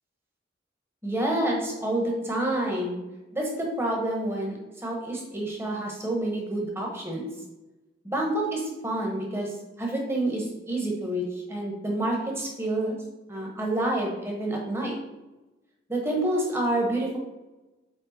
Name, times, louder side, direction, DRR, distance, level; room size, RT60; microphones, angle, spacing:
voice 1, 1.0-3.0 3.3-7.3 8.0-9.5 9.8-13.0 13.3-14.9 15.9-17.2, right 1 dB, 15° right, -1 dB, 1.3 m, -28 dB
8.3 x 3.3 x 4.3 m, 1.1 s
head